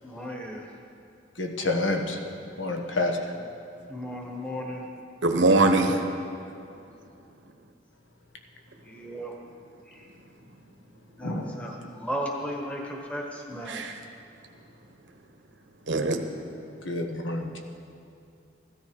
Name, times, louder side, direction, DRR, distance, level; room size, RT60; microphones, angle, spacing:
voice 1, 0.0-0.7 3.9-4.9 8.8-9.3 9.9-10.1 11.2-13.8, equal, 5° left, 0 dB, 1.2 m, -35 dB
voice 2, 1.4-2.2 2.6-3.3 11.2-11.5 16.8-17.6, left 2 dB, 85° left, 3 dB, 1.4 m, -28 dB
voice 3, 5.2-6.1 13.7-14.0 15.9-16.2, right 2 dB, 75° right, 4 dB, 1.0 m, -22 dB
15.0 x 13.0 x 5.0 m, 2.6 s
head